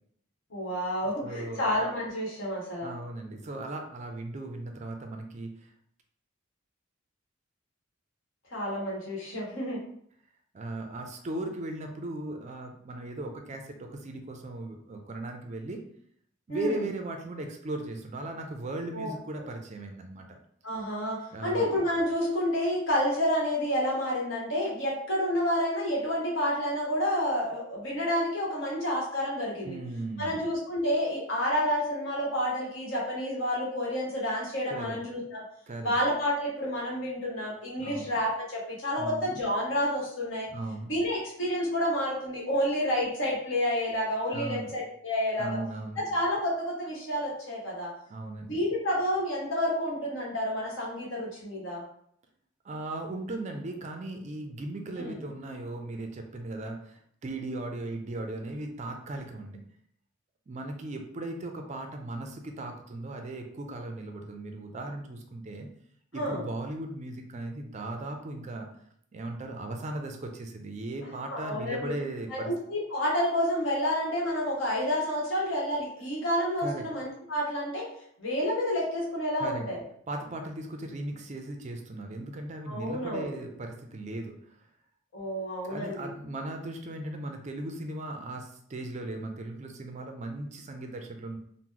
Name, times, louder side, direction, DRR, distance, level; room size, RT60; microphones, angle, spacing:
voice 1, 0.5-2.9 8.5-9.8 16.5-16.8 18.9-19.1 20.6-29.8 30.2-35.4 35.8-40.5 40.9-45.5 46.0-47.9 48.4-51.8 55.0-55.2 66.1-66.4 71.3-71.9 72.3-77.8 78.2-79.8 82.7-83.3 85.1-86.1, equal, 65° left, -3 dB, 1.1 m, -29 dB
voice 2, 1.0-1.6 2.8-5.7 10.5-15.8 16.5-20.4 21.3-21.7 29.6-30.4 34.7-35.0 35.7-36.0 37.8-38.1 39.0-39.4 40.5-40.9 44.3-44.7 45.4-46.0 48.1-48.6 52.6-59.6 60.5-65.7 66.1-68.7 69.1-72.5 76.6-76.9 79.4-79.7 80.1-84.6 85.6-91.4, right 2 dB, 35° right, 4 dB, 0.4 m, -37 dB
2.9 x 2.1 x 3.7 m, 0.66 s
head